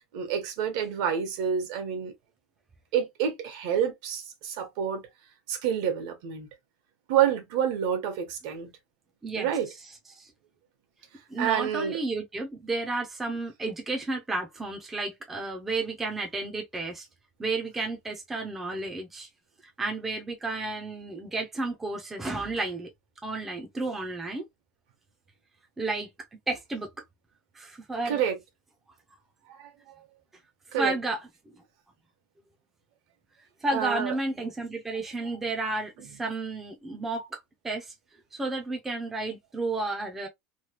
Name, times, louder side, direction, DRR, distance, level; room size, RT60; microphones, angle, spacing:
voice 1, 0.1-2.1 2.9-5.0 5.5-6.5 7.1-8.7 9.4-9.7 11.4-12.0 28.0-28.4 29.5-29.7 30.7-30.9 33.7-34.1, right 8 dB, 70° right, 1.2 m, -28 dB
voice 2, 11.3-17.1 17.4-19.3 19.8-22.9 23.2-24.4 25.8-26.1 26.5-26.9 27.5-28.2 30.8-31.6 33.6-37.9 38.3-40.3, right 2 dB, 10° right, 0.5 m, -32 dB
3.1 x 2.2 x 2.9 m
cardioid pair, 175°, 3 cm